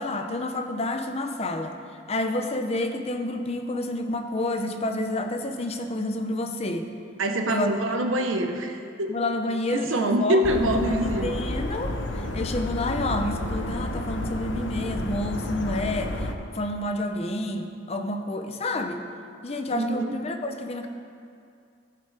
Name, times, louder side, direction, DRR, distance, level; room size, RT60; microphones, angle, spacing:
voice 1, 0.0-1.8 2.1-6.9 7.5-7.7 9.1-16.3 16.5-19.0 19.4-20.9, left 1 dB, 30° left, 6 dB, 0.6 m, -29 dB
voice 2, 7.2-9.1 9.7-11.4 19.7-20.1, right 1 dB, 90° right, 4 dB, 0.9 m, -25 dB
sound 1, 10.4-16.3, left 1 dB, 70° left, 0.8 m, -31 dB
14.5 x 5.8 x 4.8 m, 2.4 s
head